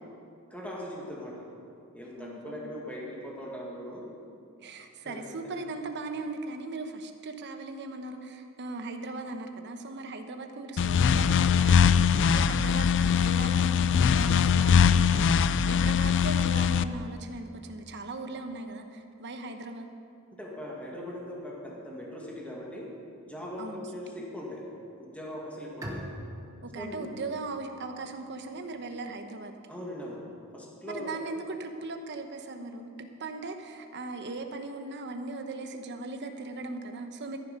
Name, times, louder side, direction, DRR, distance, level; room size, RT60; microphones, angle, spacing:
voice 1, 0.5-1.5 1.9-4.1 5.0-5.3 20.3-22.9 23.2-24.6 25.0-26.0 26.8-27.1 29.7-30.3 30.5-31.2, left 1 dB, 5° left, -3 dB, 1.9 m, -40 dB
voice 2, 2.2-2.7 4.6-19.9 23.6-24.2 26.6-29.6 30.8-37.4, right 3 dB, 55° right, 6 dB, 1.0 m, -38 dB
sound 1, 10.8-16.8, left 6 dB, 55° left, 0.4 m, -22 dB
Bowed string instrument, 25.8-29.3, equal, 15° right, 1.3 m, -44 dB
13.5 x 11.0 x 5.3 m, 2.5 s
head